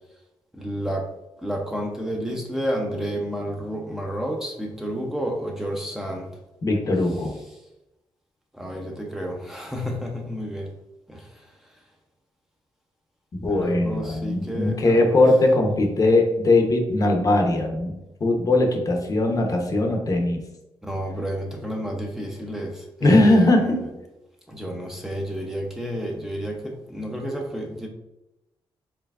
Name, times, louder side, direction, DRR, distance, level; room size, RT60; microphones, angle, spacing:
voice 1, 0.5-1.1 1.4-6.3 8.5-10.7 11.1-11.4 13.5-15.3 20.8-23.9 24.5-27.9, equal, 5° right, 0 dB, 0.6 m, -30 dB
voice 2, 6.6-7.3 13.4-18.0 18.2-20.4 23.0-23.8, left 2 dB, 40° left, 2 dB, 0.8 m, -20 dB
4.6 x 3.1 x 2.4 m, 0.95 s
cardioid pair, 90°, 9 cm